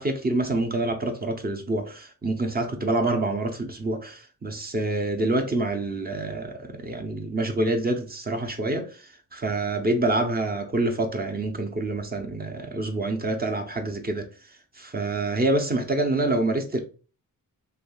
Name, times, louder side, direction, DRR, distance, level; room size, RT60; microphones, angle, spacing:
voice 1, 0.0-14.3 14.8-16.8, right 2 dB, 30° right, 0.6 m, -27 dB
3.3 x 2.6 x 2.2 m
cardioid pair, 75°, 34 cm